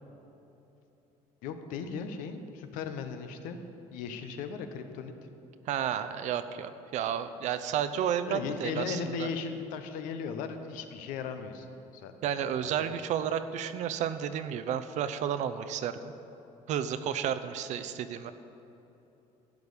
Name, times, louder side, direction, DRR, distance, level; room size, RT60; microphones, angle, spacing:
voice 1, 1.4-3.6 3.9-5.3 8.3-13.0, left 6 dB, 80° left, 7 dB, 0.9 m, -37 dB
voice 2, 5.7-9.3 12.2-16.1 16.7-18.3, right 9 dB, 60° right, 11 dB, 0.6 m, -32 dB
12.0 x 5.3 x 8.3 m, 3.0 s
cardioid pair, 115°, 13 cm